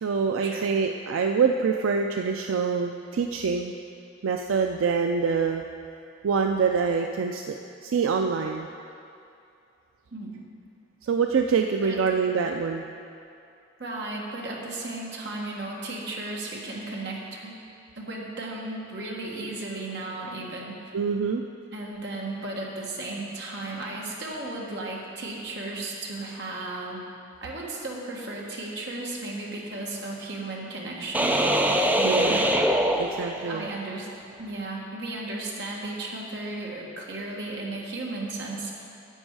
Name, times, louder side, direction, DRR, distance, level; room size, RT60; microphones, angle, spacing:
voice 1, 0.0-3.7 4.2-5.6 6.2-8.7 11.0-12.9 20.9-21.4 32.0-32.4 32.9-33.7, right 5 dB, 85° right, 4 dB, 0.4 m, -25 dB
voice 2, 13.8-17.5 18.0-20.7 21.7-27.0 27.4-31.4 31.9-32.5 33.4-34.1 34.4-38.8, right 2 dB, 55° right, -3 dB, 1.6 m, -35 dB
sound 1, 31.1-33.8, right 1 dB, 10° right, 0.4 m, -23 dB
11.0 x 7.9 x 4.7 m, 2.6 s
head